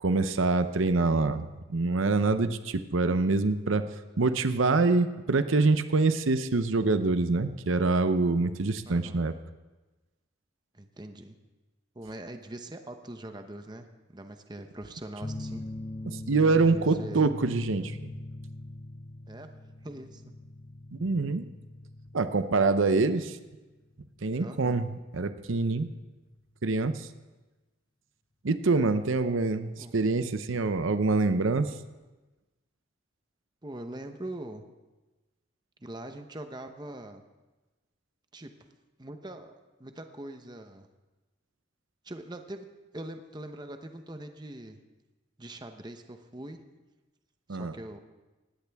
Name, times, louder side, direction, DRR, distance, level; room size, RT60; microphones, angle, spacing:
voice 1, 0.0-3.9 4.2-9.3 16.1-18.0 20.9-21.5 22.1-23.4 24.2-25.9 26.6-27.1 28.4-31.7 47.5-47.7, right 3 dB, 80° right, 11 dB, 0.7 m, -25 dB
voice 2, 8.9-9.2 10.7-11.3 11.9-15.7 16.7-17.3 19.3-19.5 19.8-20.3 24.4-24.8 29.8-29.9 33.6-34.6 35.8-37.2 38.3-38.5 39.0-39.5 39.8-40.9 42.0-42.7 42.9-44.8 45.4-46.6 47.5-48.0, right 1 dB, 20° right, 6 dB, 0.9 m, -42 dB
sound 1, 15.2-26.4, left 1 dB, 25° left, 0.6 m, -42 dB
19.5 x 16.5 x 3.5 m, 1.2 s
head